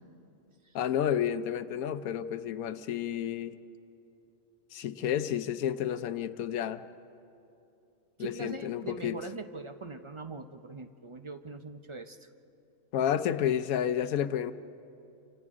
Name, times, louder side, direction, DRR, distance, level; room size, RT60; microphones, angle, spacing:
voice 1, 0.7-3.6 4.7-6.8 8.2-9.2 12.9-14.5, left 9 dB, 85° left, 12 dB, 1.2 m, -30 dB
voice 2, 8.2-12.3, right 3 dB, 35° right, 7 dB, 0.5 m, -42 dB
28.5 x 26.0 x 3.7 m, 2.8 s
omnidirectional pair, 1.5 m